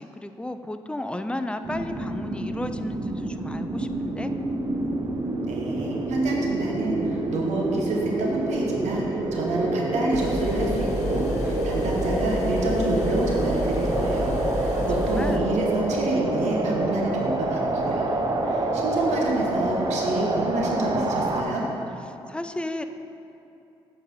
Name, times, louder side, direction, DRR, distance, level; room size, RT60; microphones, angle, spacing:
voice 1, 0.0-4.3 14.7-15.5 22.3-22.8, left 1 dB, 10° left, 9 dB, 0.5 m, -33 dB
sound 1, 1.6-21.4, right 2 dB, 35° right, 0.8 m, -27 dB
voice 2, 5.5-18.1 18.4-21.6, right 2 dB, 75° right, -2 dB, 1.2 m, -28 dB
sound 2, 10.1-15.4, left 2 dB, 80° left, 0.6 m, -31 dB
8.1 x 4.2 x 5.4 m, 2.8 s
supercardioid pair, 55°, 12 cm